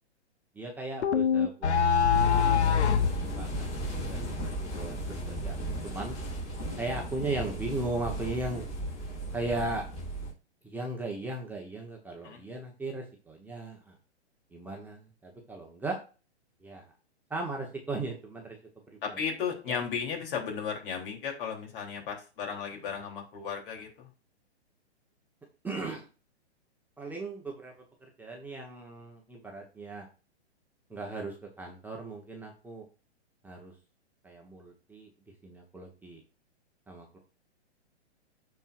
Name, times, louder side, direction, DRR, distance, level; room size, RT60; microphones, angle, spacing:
voice 1, 0.5-1.8 2.4-3.7 4.1-5.6 5.8-6.2 6.8-8.7 9.3-9.8 10.6-13.9 14.5-16.0 16.6-16.9 17.3-18.6 19.1-19.2 19.7-19.8 22.9-23.0 25.6-26.1 27.0-27.7 28.0-30.1 30.9-32.8 33.4-33.7 34.2-35.1 35.4-36.2 36.9-37.2, right 2 dB, 5° right, -1 dB, 1.1 m, -37 dB
sound 1, 1.0-3.2, left 7 dB, 75° left, 1.0 m, -23 dB
sound 2, 2.1-10.3, right 1 dB, 20° left, 3.8 m, -36 dB
voice 2, 19.0-24.1, left 6 dB, 50° left, 2 dB, 3.3 m, -35 dB
13.5 x 4.6 x 2.5 m, 0.33 s
hypercardioid pair, 135°, 34 cm